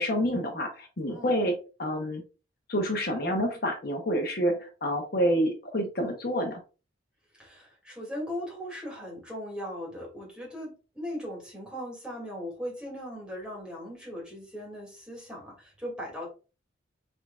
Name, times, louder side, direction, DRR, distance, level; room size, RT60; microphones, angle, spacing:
voice 1, 0.0-2.2 2.7-6.6, equal, 55° left, 3 dB, 0.8 m, -28 dB
voice 2, 1.1-1.4 7.3-16.3, equal, 5° right, -3 dB, 2.3 m, -38 dB
6.3 x 3.6 x 2.3 m, 0.34 s
head